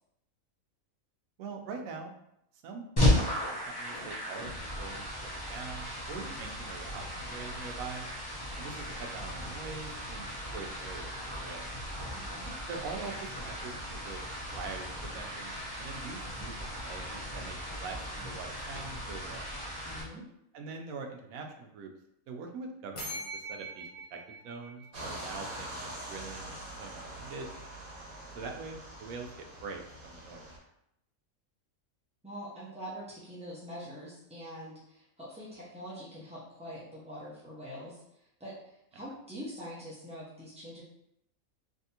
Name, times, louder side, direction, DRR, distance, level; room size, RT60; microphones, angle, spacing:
voice 1, 1.4-2.1 2.6-3.3 3.7-8.1 8.6-11.7 12.7-13.7 14.1-14.2 14.5-19.5 20.5-21.9 22.3-24.2 24.4-27.5 28.3-30.5, right 4 dB, 75° right, 3 dB, 1.0 m, -43 dB
sound 1, 3.0-20.0, left 1 dB, 20° left, 0.6 m, -35 dB
voice 2, 12.1-12.5 19.8-20.3 32.2-38.0 38.4-40.8, equal, 10° right, -8 dB, 0.3 m, -44 dB
sound 2, 23.0-25.7, right 1 dB, 85° left, 1.3 m, -43 dB
sound 3, 24.9-30.6, right 1 dB, 45° right, 1.0 m, -44 dB
3.5 x 2.7 x 2.8 m, 0.78 s
omnidirectional pair, 1.5 m